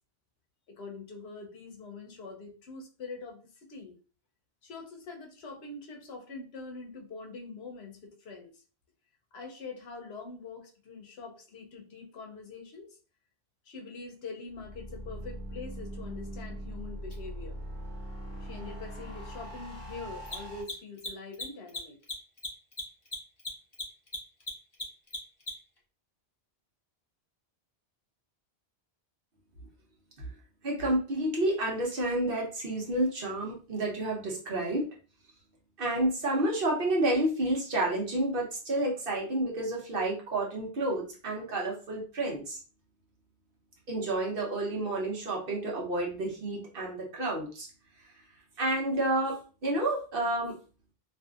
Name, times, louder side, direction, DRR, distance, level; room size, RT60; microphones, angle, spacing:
voice 1, 0.7-3.4 3.7-4.0 4.6-8.6 9.3-13.0 13.6-17.6 18.4-22.0, left 4 dB, 75° left, 2 dB, 0.9 m, -44 dB
sound 1, 14.5-20.6, equal, 30° right, 1.1 m, -41 dB
Mechanisms, 17.1-17.2 20.2-25.8, left 2 dB, 30° left, 0.6 m, -38 dB
voice 2, 30.6-34.9 35.8-42.6 43.9-47.7 48.6-50.6, right 1 dB, 60° right, -2 dB, 1.0 m, -30 dB
2.7 x 2.5 x 2.3 m, 0.37 s
omnidirectional pair, 1.1 m